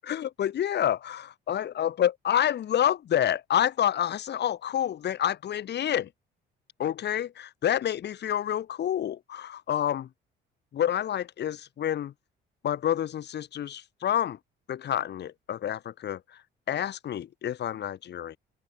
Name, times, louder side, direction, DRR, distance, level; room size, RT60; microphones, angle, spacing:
voice 1, 0.0-6.1 6.8-10.1 10.7-12.1 12.6-14.4 14.7-16.2 16.7-18.4, left 10 dB, 55° left, 6.4 m, -28 dB
open air
cardioid pair, 130°, 21 cm